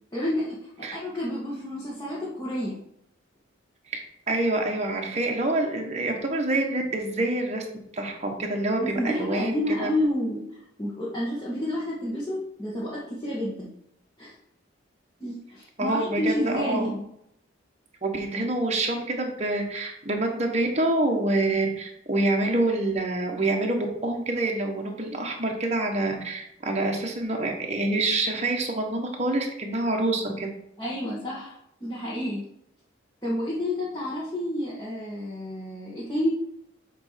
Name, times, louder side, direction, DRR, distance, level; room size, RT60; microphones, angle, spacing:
voice 1, 0.1-2.8 8.8-10.4 10.8-13.7 14.2-14.3 15.2-17.1 30.8-32.4 33.2-36.3, left 1 dB, 20° left, -8 dB, 1.7 m, -30 dB
voice 2, 4.3-7.6 7.9-9.9 15.8-16.9 18.0-30.5, right 2 dB, 35° right, 1 dB, 1.3 m, -26 dB
7.9 x 3.4 x 5.8 m, 0.76 s
head